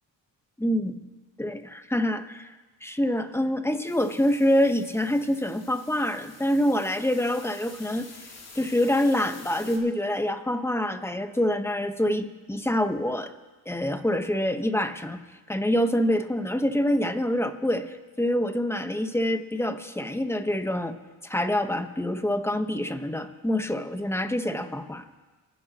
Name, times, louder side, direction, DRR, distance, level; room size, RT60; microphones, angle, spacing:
voice 1, 0.6-0.9 1.4-2.5 2.8-8.1 8.5-13.3 13.7-15.2 15.5-20.9 21.2-25.1, left 1 dB, 5° left, 8 dB, 1.1 m, -26 dB
sound 1, 3.8-9.8, left 3 dB, 40° left, 2.7 m, -48 dB
28.0 x 11.0 x 3.0 m, 1.3 s
cardioid pair, 65°, 39 cm